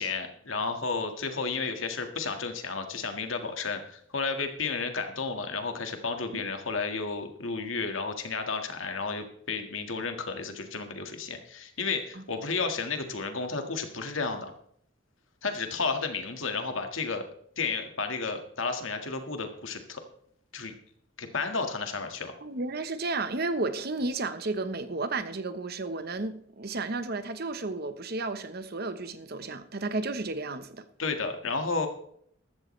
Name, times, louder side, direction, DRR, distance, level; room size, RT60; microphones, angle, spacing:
voice 1, 0.0-14.5 15.4-17.2 17.6-20.0 20.5-20.7 21.2-22.3 31.0-31.9, left 4 dB, 90° left, 1.8 m, -32 dB
voice 2, 22.4-30.9, right 3 dB, 55° right, 1.0 m, -33 dB
14.5 x 13.0 x 3.3 m
head